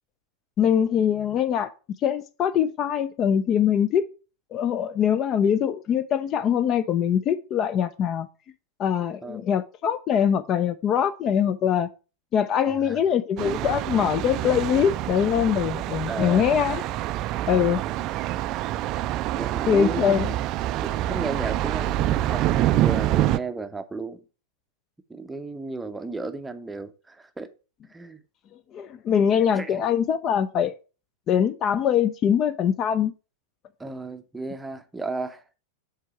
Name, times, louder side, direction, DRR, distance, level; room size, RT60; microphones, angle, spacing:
voice 1, 0.6-1.7 2.0-4.0 4.5-8.3 8.8-11.9 12.3-16.8 17.5-17.8 19.7-20.3 28.7-30.7 31.3-33.1, left 8 dB, 30° left, 0.4 m, -23 dB
voice 2, 12.7-13.0 16.1-16.5 17.5-17.9 19.4-20.2 20.8-24.2 25.1-27.5 27.9-28.2 29.5-29.8 33.8-35.4, right 3 dB, 10° right, 0.6 m, -34 dB
Thunder, 13.4-23.4, right 14 dB, 40° right, 0.3 m, -26 dB
7.3 x 3.5 x 4.6 m
figure-of-eight pair, 90°, 0 cm